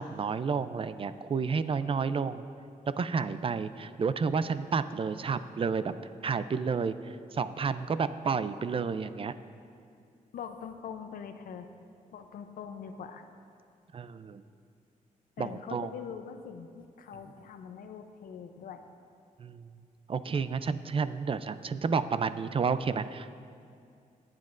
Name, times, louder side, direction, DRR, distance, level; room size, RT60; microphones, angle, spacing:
voice 1, 0.0-2.4 3.0-5.9 6.2-9.3 13.9-14.4 15.4-15.9 19.4-19.7 20.1-23.4, right 5 dB, 40° right, 13 dB, 0.4 m, -31 dB
voice 2, 10.3-11.7 12.1-13.3 15.4-18.8, left 7 dB, 85° left, 8 dB, 0.6 m, -43 dB
21.0 x 7.5 x 2.5 m, 2.4 s
cardioid pair, 80°, 14 cm